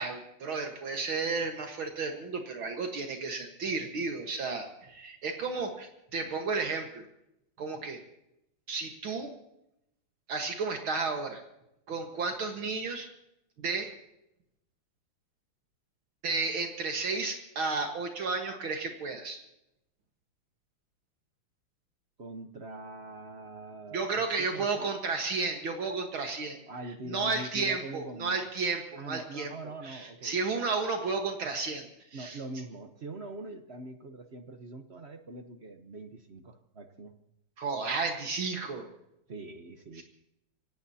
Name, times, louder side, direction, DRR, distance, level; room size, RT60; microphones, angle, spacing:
voice 1, 0.0-7.1 7.6-8.0 8.7-9.3 10.3-11.4 11.9-13.1 13.6-13.9 16.2-19.4 23.9-26.6 27.1-29.5 29.8-31.8 32.1-32.4 37.6-38.9 39.9-40.0, right 4 dB, 65° right, 4 dB, 2.3 m, -32 dB
voice 2, 22.2-25.0 26.7-28.4 29.0-30.3 32.1-37.1 39.3-40.0, right 2 dB, 45° right, 7 dB, 0.9 m, -43 dB
26.0 x 17.5 x 2.8 m, 0.83 s
omnidirectional pair, 2.4 m